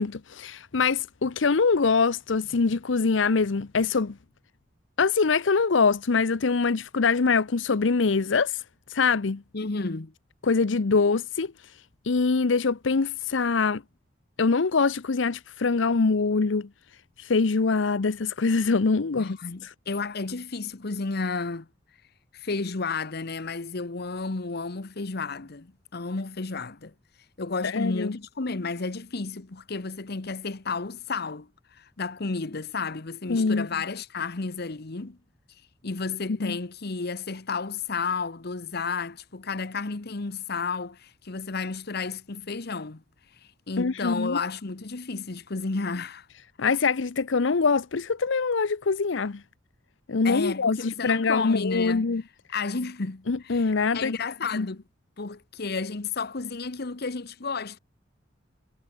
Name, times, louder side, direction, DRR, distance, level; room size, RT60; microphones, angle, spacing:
voice 1, 0.0-4.1 5.0-8.6 8.9-9.4 10.4-11.5 12.0-13.8 14.4-16.7 17.2-19.4 19.6-19.7 27.6-28.2 33.3-33.7 36.4-36.6 43.8-44.4 46.6-49.4 50.1-52.2 53.3-54.2 54.5-54.7, left 4 dB, 80° left, 0.7 m, -24 dB
voice 2, 9.5-10.1 19.2-21.7 22.3-26.9 27.4-31.5 31.8-35.2 35.8-43.0 43.7-46.3 50.2-52.1 52.5-54.8 55.2-57.8, left 4 dB, 55° left, 1.1 m, -32 dB
head